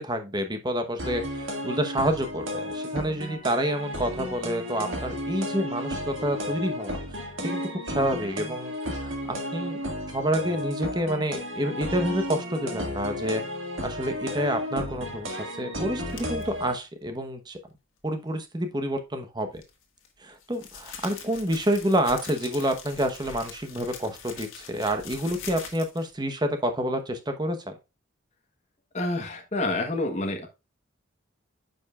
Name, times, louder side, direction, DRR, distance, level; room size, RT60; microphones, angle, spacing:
voice 1, 0.0-7.6 7.9-8.7 9.0-9.8 10.1-13.4 13.8-17.6 18.0-19.5 20.2-27.7, right 1 dB, 20° right, 0.9 m, -28 dB
sound 1, 1.0-16.7, equal, 75° right, 2.0 m, -33 dB
sound 2, 16.1-16.4 19.5-26.1, left 6 dB, 85° left, 1.6 m, -43 dB
voice 2, 28.9-30.5, left 2 dB, 35° left, 1.2 m, -28 dB
9.6 x 5.3 x 2.4 m
head